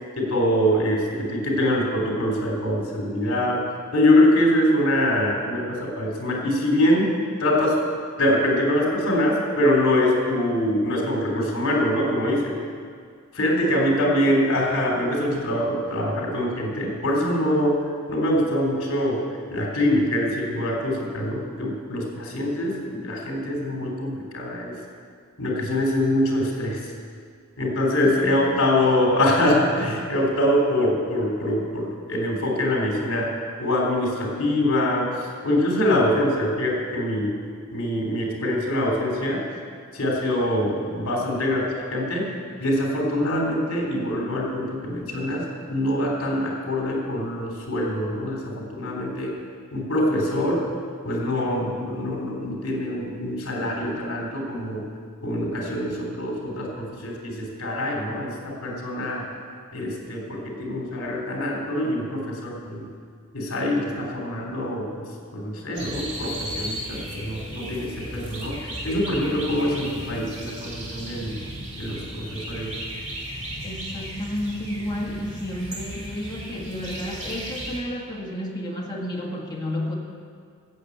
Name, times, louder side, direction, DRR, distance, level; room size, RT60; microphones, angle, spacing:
voice 1, 0.2-3.7 3.9-7.8 8.2-12.6 13.3-17.8 18.1-24.8 25.4-26.9 27.6-33.3 33.6-37.4 37.7-39.4 39.9-42.3 42.6-49.4 49.7-50.7 51.0-54.9 55.2-59.3 59.7-62.9 63.3-65.1 65.3-71.4 71.8-72.8, left 1 dB, 65° left, -1 dB, 3.3 m, -24 dB
voice 2, 13.4-14.2 28.0-28.5 73.6-79.9, equal, 20° left, -2 dB, 1.9 m, -32 dB
sound 1, 65.7-77.8, equal, 30° right, 2.7 m, -35 dB
15.0 x 7.2 x 8.4 m, 2.1 s
head